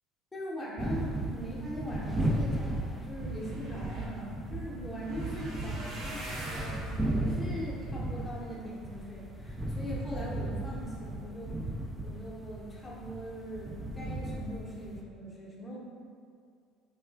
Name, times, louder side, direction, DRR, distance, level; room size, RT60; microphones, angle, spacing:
voice 1, 0.3-6.2 6.8-11.6 12.0-15.8, equal, 20° left, -6 dB, 0.7 m, -41 dB
sound 1, 0.8-15.0, right 1 dB, 10° right, 0.3 m, -35 dB
sound 2, 3.2-9.3 9.9-10.3 10.8-11.0 11.2-11.3, right 1 dB, 55° right, 0.6 m, -45 dB
3.2 x 2.3 x 2.3 m, 2.2 s
supercardioid pair, 95°, 0 cm